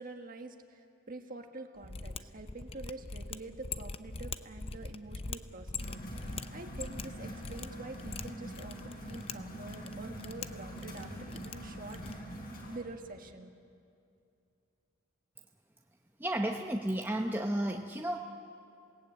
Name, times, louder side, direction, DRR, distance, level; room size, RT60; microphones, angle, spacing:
voice 1, 0.0-12.4 12.7-13.5, right 2 dB, 45° right, 4 dB, 1.6 m, -46 dB
Mechanisms, 1.8-12.3, left 4 dB, 30° left, 0.6 m, -43 dB
sound 1, 5.8-12.8, equal, 45° left, 4.5 m, -44 dB
voice 2, 16.2-18.2, right 1 dB, 10° right, 2 dB, 0.8 m, -32 dB
28.0 x 18.5 x 8.7 m, 2.5 s
head